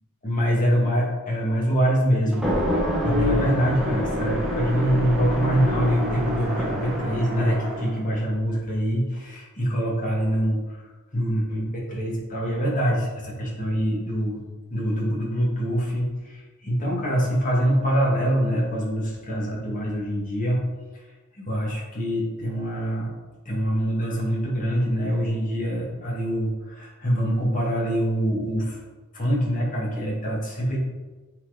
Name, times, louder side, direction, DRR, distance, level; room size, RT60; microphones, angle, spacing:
voice 1, 0.2-2.8 3.0-10.8 11.1-14.4 14.7-20.6 20.9-21.0 21.3-23.1 23.5-28.8 29.1-30.8, equal, 35° left, -4 dB, 2.3 m, -24 dB
sound 1, 2.3-8.0, equal, ahead, 1.4 m, -26 dB
8.1 x 4.2 x 5.2 m, 1.3 s
head